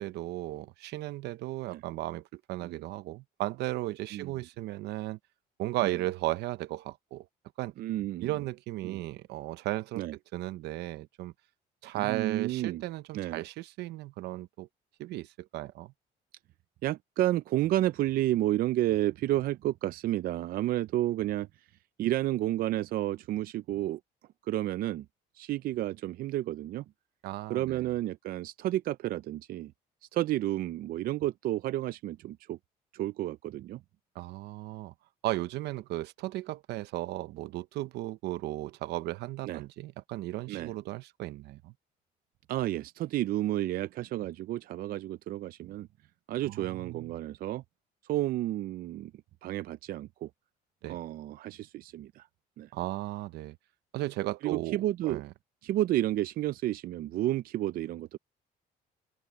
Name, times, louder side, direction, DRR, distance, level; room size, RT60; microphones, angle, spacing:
voice 1, 0.0-5.2 5.6-7.3 7.6-7.7 8.2-10.0 10.3-11.3 11.8-14.7 15.0-15.9 27.2-27.9 34.1-34.9 35.2-41.7 46.4-47.1 50.8-51.0 52.7-53.6 53.9-55.3, right 16 dB, 80° right, 0.8 m, -35 dB
voice 2, 7.8-8.3 8.8-9.0 10.0-10.2 12.0-12.8 13.1-13.4 16.8-21.5 22.0-24.0 24.4-25.1 25.3-26.8 27.5-29.7 30.1-32.6 32.9-33.8 39.5-39.6 40.5-40.7 42.5-45.9 46.3-47.6 48.0-49.1 49.4-50.3 50.9-52.3 52.6-52.7 54.4-55.2 55.6-58.2, right 14 dB, 60° right, 0.4 m, -31 dB
cardioid pair, 110°, 17 cm